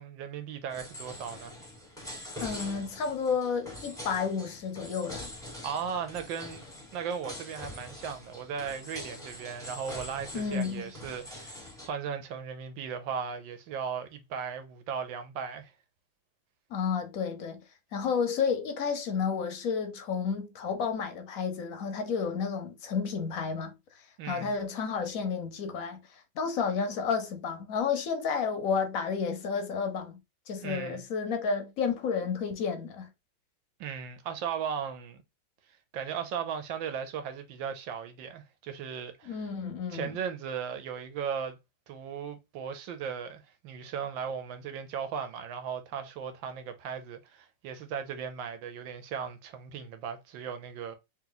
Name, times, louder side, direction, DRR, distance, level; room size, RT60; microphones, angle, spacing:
voice 1, 0.0-1.5 5.6-6.6 6.9-15.7 24.2-24.5 30.6-31.0 33.8-35.2 35.9-39.5 39.9-41.6 41.9-50.9, right 7 dB, 75° right, 1.5 m, -37 dB
sound 1, 0.7-11.9, left 1 dB, ahead, 1.0 m, -44 dB
voice 2, 2.4-5.3 10.3-10.8 16.7-17.6 17.9-23.8 24.3-30.2 30.5-33.1 39.2-40.1, left 6 dB, 60° left, 1.0 m, -31 dB
3.3 x 3.1 x 3.8 m
omnidirectional pair, 2.2 m